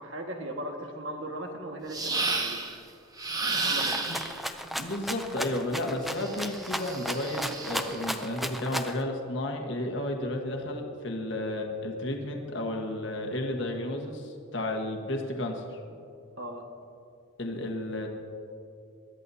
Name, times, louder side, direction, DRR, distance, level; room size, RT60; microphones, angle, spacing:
voice 1, 0.0-2.7 3.5-4.0 16.4-16.6, right 1 dB, 65° right, 2 dB, 1.6 m, -38 dB
sound 1, 1.9-2.8 3.2-4.4 6.1-8.0, right 3 dB, 15° right, 0.8 m, -32 dB
Rattle (instrument), 3.8-9.0, equal, ahead, 0.5 m, -35 dB
voice 2, 4.8-15.8 17.4-18.1, left 1 dB, 60° left, 2 dB, 1.4 m, -32 dB
21.5 x 13.5 x 2.8 m, 2.4 s
head